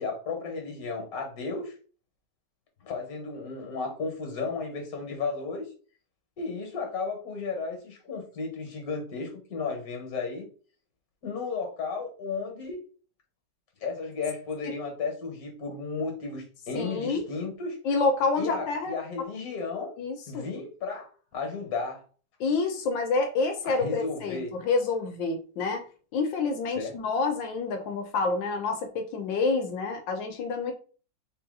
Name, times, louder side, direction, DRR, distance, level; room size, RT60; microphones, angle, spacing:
voice 1, 0.0-1.7 2.8-5.7 6.4-10.4 11.2-12.8 13.8-17.8 18.3-19.9 20.3-22.0 23.6-24.6 26.8-26.9, left 4 dB, 55° left, 3 dB, 1.7 m, -34 dB
voice 2, 16.7-17.3 17.8-18.9 20.0-20.5 22.4-25.8 26.1-30.7, left 4 dB, 85° left, 5 dB, 1.4 m, -28 dB
4.0 x 2.7 x 3.8 m, 0.39 s
omnidirectional pair, 2.0 m